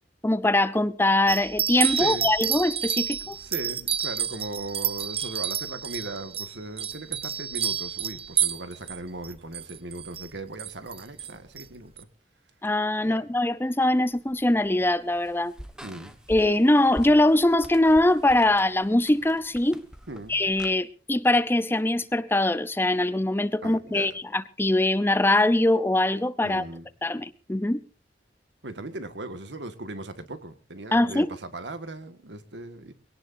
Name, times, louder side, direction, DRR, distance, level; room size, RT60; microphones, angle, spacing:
voice 1, 0.2-3.4 12.6-15.5 16.3-19.8 20.3-26.6 27.0-27.8 30.9-31.3, left 1 dB, 15° left, 0.6 m, -22 dB
sound 1, 1.3-9.0 9.2-10.3 10.6-11.3 11.6-11.7 12.0-12.1, right 9 dB, 35° right, 0.7 m, -29 dB
voice 2, 1.9-2.3 3.2-12.1 13.0-13.3 15.8-16.2 20.1-20.4 23.6-24.2 26.4-26.9 28.6-32.9, right 2 dB, 80° right, 1.7 m, -38 dB
sound 2, 14.1-20.7, equal, 5° right, 1.4 m, -46 dB
22.5 x 17.5 x 2.7 m
head